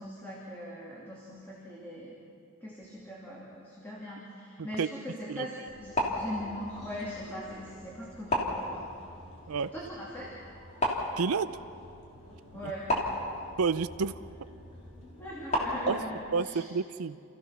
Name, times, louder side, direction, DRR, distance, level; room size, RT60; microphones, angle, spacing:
voice 1, 0.0-2.2 2.6-8.9 9.7-10.4 12.5-12.9 15.2-16.6, equal, 10° left, -7 dB, 2.8 m, -41 dB
sound 1, 5.7-16.2, left 1 dB, 30° left, 3.0 m, -36 dB
voice 2, 11.2-11.6 12.6-12.7 13.6-14.2 15.9-16.0 16.3-17.2, right 5 dB, 90° right, 14 dB, 0.5 m, -30 dB
29.5 x 15.5 x 6.0 m, 2.6 s
head